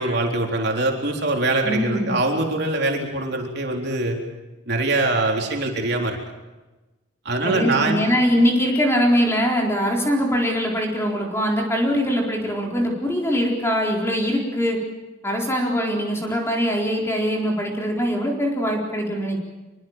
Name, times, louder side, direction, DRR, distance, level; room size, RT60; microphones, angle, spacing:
voice 1, 0.0-4.2 4.7-6.2 7.3-8.0, right 2 dB, 50° right, 1 dB, 3.9 m, -23 dB
voice 2, 1.6-2.1 7.4-14.8 15.2-19.4, equal, 10° left, -1 dB, 4.1 m, -22 dB
25.0 x 23.0 x 7.4 m, 1.1 s
head